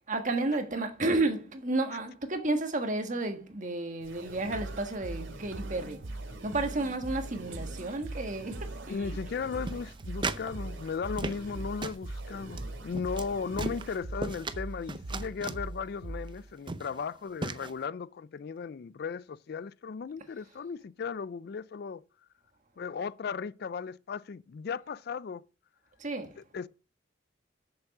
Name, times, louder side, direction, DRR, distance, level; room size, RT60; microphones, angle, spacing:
voice 1, 0.1-6.0 6.4-9.2 26.0-26.4, right 2 dB, 40° right, 1.5 m, -32 dB
sound 1, 4.0-14.0, right 2 dB, 75° right, 2.9 m, -48 dB
sound 2, 4.5-16.5, right 2 dB, 60° right, 0.8 m, -41 dB
voice 2, 8.9-22.0 22.8-25.4 26.4-26.7, left 5 dB, 50° left, 0.3 m, -36 dB
sound 3, 9.7-10.5 10.8-11.6 11.8-12.0 12.5-12.6 12.9-13.3 13.6-14.6 14.9-15.6 16.3-16.4 16.7-17.0 17.4-17.7, right 3 dB, 25° right, 0.5 m, -36 dB
8.0 x 7.2 x 6.0 m
head